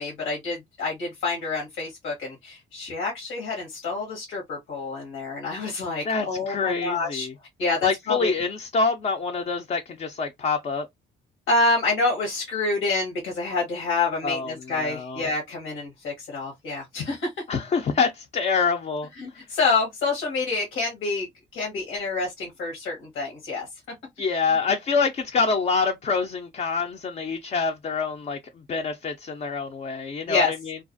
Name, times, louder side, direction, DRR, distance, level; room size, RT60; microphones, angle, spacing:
voice 1, 0.0-7.3 7.6-8.3 11.5-17.3 19.2-21.3 21.5-23.7 30.3-30.5, left 3 dB, 85° left, 1.1 m, -27 dB
voice 2, 6.0-7.3 7.8-10.9 14.2-15.2 17.5-19.4 24.2-30.8, left 5 dB, 35° left, 0.4 m, -26 dB
2.4 x 2.3 x 2.4 m
cardioid pair, 90°, 20 cm